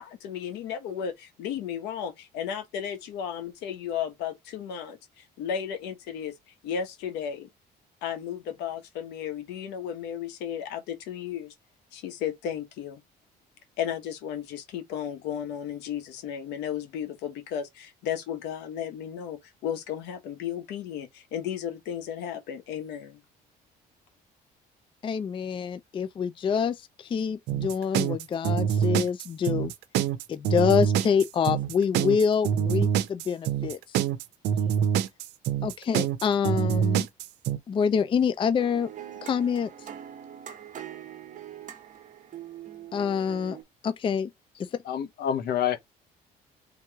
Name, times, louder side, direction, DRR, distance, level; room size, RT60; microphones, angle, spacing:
voice 1, 0.0-6.3 6.6-7.5 8.0-11.5 11.9-13.0 13.8-23.2, left 8 dB, 85° left, 1.2 m, -34 dB
voice 2, 25.0-29.7 30.3-34.0 35.6-37.1 37.7-38.9 39.2-39.7 42.9-43.6 43.8-44.3, left 7 dB, 30° left, 0.4 m, -26 dB
sound 1, 27.5-37.6, right 8 dB, 80° right, 0.6 m, -25 dB
sound 2, 38.6-43.6, right 10 dB, 50° right, 1.1 m, -43 dB
voice 3, 44.9-45.8, left 9 dB, 70° left, 0.9 m, -27 dB
3.5 x 3.0 x 4.6 m
cardioid pair, 110°, 17 cm